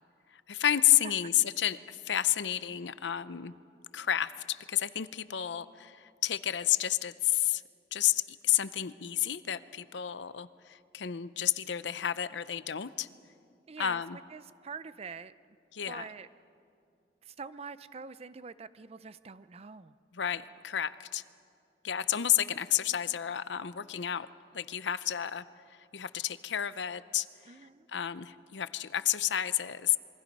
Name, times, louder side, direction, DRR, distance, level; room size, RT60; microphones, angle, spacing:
voice 1, 0.3-3.5 3.9-7.6 7.9-13.1 13.8-14.2 15.7-16.0 20.1-21.2 21.8-24.3 24.5-25.4 25.9-27.6 27.9-30.0, left 11 dB, 85° left, 15 dB, 0.6 m, -30 dB
voice 2, 13.7-14.0 14.3-15.3 15.9-16.3 17.2-19.9 27.5-27.9, right 5 dB, 35° right, 14 dB, 0.5 m, -45 dB
27.5 x 23.0 x 5.4 m, 2.4 s
head